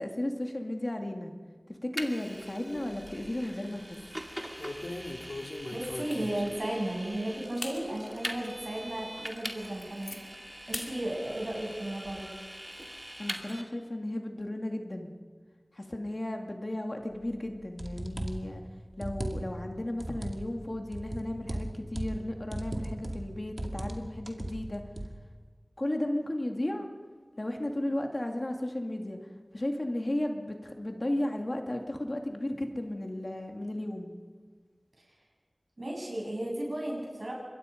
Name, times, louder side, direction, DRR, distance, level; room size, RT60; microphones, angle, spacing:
voice 1, 0.0-1.3 1.7-4.0 13.2-15.1 15.7-18.6 19.0-24.8 25.8-26.9 27.4-29.2 29.5-34.1, left 1 dB, 45° left, 3 dB, 2.4 m, -34 dB
Vehicle, 2.0-13.6, equal, 15° right, 2.3 m, -43 dB
sound 1, 2.7-3.4 3.8-4.0 4.6-6.6 7.1-7.2 7.6-7.8 8.3-8.4 8.9-9.0 9.4-10.2 10.7-10.9 11.3-12.2, left 2 dB, 85° left, 2.4 m, -40 dB
voice 2, 5.7-10.2 10.7-12.3 35.8-37.3, right 1 dB, 65° right, -2 dB, 7.8 m, -34 dB
sound 2, 17.3-17.4 17.8-18.5 18.9-19.6 20.0-20.4 20.9-22.2 22.5-23.3 23.6-24.0 24.3-25.1, right 1 dB, 40° right, 2.3 m, -36 dB
25.5 x 21.5 x 5.3 m, 1.5 s
wide cardioid pair, 40°, 0 cm